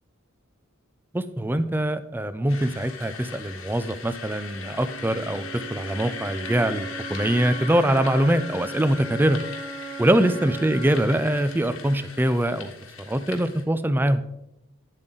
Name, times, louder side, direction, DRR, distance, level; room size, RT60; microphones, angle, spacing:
voice 1, 1.1-9.4 10.0-12.7 13.0-14.2, right 1 dB, 10° right, 12 dB, 0.4 m, -23 dB
sound 1, 2.5-13.6, left 5 dB, 75° left, 1.4 m, -39 dB
Wind instrument woodwind instrument, 4.5-12.5, right 2 dB, 75° right, 1.5 m, -39 dB
9.8 x 7.5 x 3.8 m, 0.85 s
head